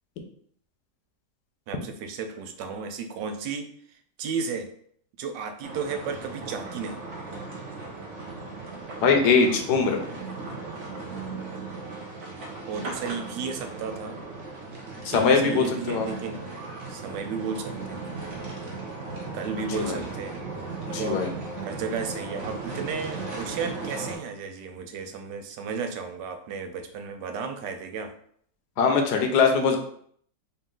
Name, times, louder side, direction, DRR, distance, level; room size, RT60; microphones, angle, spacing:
voice 1, 1.7-3.7 4.2-4.7 5.2-7.1 12.7-14.2 15.1-16.5 16.9-18.0 19.3-20.4 21.0-21.3 21.6-28.1, right 5 dB, 90° right, 7 dB, 1.2 m, -33 dB
sound 1, 5.6-24.2, right 3 dB, 50° right, 1.1 m, -37 dB
voice 2, 9.0-10.0 15.0-16.1 19.7-19.9 20.9-21.3 28.8-29.8, left 5 dB, 75° left, 4 dB, 1.2 m, -21 dB
4.1 x 2.6 x 3.7 m, 0.63 s
omnidirectional pair, 1.8 m